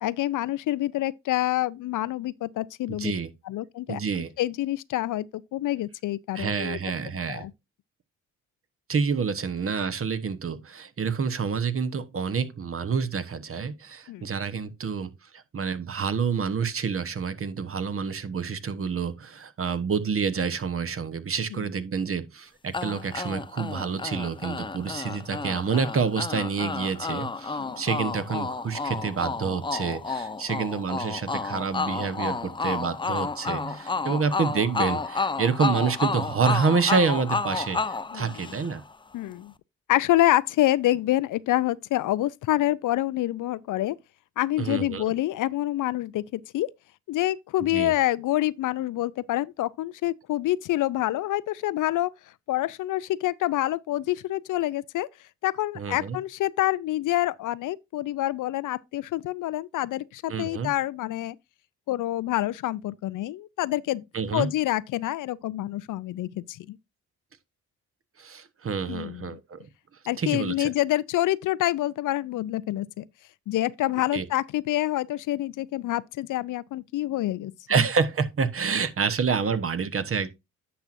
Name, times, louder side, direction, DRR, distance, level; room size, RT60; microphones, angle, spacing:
voice 1, 0.0-3.1 3.5-4.0 4.4-6.8 7.3-7.5 14.1-14.3 21.5-21.7 27.6-27.7 38.1-38.5 39.1-39.5 39.9-44.0 44.4-46.7 47.1-52.1 52.5-55.1 55.4-61.4 61.9-64.0 64.3-66.8 68.9-69.4 70.1-73.0 73.5-77.5, left 15 dB, 70° left, 0.5 m, -27 dB
voice 2, 3.0-3.3 3.9-4.3 6.3-7.4 8.9-38.8 44.6-45.1 47.7-47.9 55.7-56.2 60.3-60.7 64.1-64.5 68.2-69.6 70.2-70.7 74.1-74.3 77.7-80.3, right 5 dB, 45° right, 1.1 m, -28 dB
sound 1, 22.7-38.9, left 4 dB, 15° left, 0.4 m, -31 dB
10.0 x 6.0 x 2.6 m
cardioid pair, 65°, 32 cm